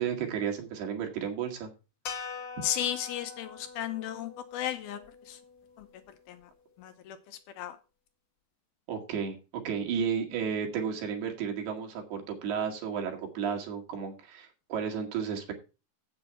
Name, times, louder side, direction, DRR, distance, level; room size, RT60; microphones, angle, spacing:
voice 1, 0.0-1.7 2.6-2.7 8.9-9.4 9.7-15.5, right 7 dB, 70° right, 2 dB, 3.9 m, -33 dB
sound 1, 2.0-6.4, left 6 dB, 60° left, 1.6 m, -44 dB
voice 2, 2.6-5.0 5.3-5.4 5.8-5.9 6.3-6.5 6.8-7.8, left 11 dB, 75° left, 9 dB, 2.5 m, -35 dB
8.2 x 7.9 x 5.8 m, 0.31 s
omnidirectional pair, 4.8 m